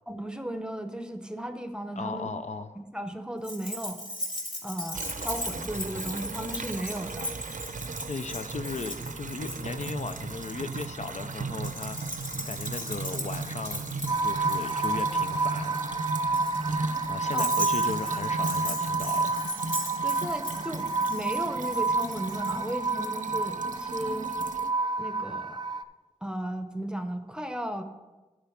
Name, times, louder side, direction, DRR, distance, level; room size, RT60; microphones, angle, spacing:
voice 1, 0.1-2.3 2.8-4.0 4.6-7.3 17.3-17.5 20.0-24.3 25.0-25.6 26.2-27.8, right 1 dB, 5° right, 7 dB, 0.8 m, -35 dB
voice 2, 2.0-2.8 8.1-12.0 12.4-13.9 14.2-15.8 17.1-19.5, left 4 dB, 60° left, 8 dB, 0.5 m, -37 dB
Keys jangling, 3.4-10.9 11.6-22.6, left 1 dB, 40° left, 3.1 m, -38 dB
sound 1, 4.9-24.7, right 3 dB, 80° right, 0.6 m, -37 dB
sound 2, 14.1-25.8, right 3 dB, 35° right, 0.5 m, -29 dB
10.5 x 5.0 x 5.8 m, 1.2 s
wide cardioid pair, 75°, 13 cm